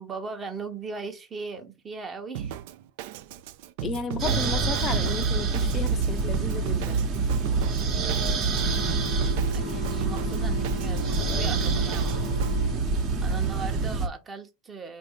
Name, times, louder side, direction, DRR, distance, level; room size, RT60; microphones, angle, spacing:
voice 1, 0.0-2.6 9.5-12.3 13.2-15.0, right 4 dB, 25° right, 0.8 m, -38 dB
Drum kit, 2.3-12.6, right 10 dB, 65° right, 0.3 m, -37 dB
voice 2, 3.8-7.0 13.3-13.5, left 5 dB, 35° left, 0.5 m, -33 dB
sound 1, 4.2-14.1, right 4 dB, 45° right, 1.1 m, -26 dB
sound 2, 8.5-12.8, left 13 dB, 80° left, 0.8 m, -39 dB
3.7 x 2.6 x 3.4 m
hypercardioid pair, 90°, 0 cm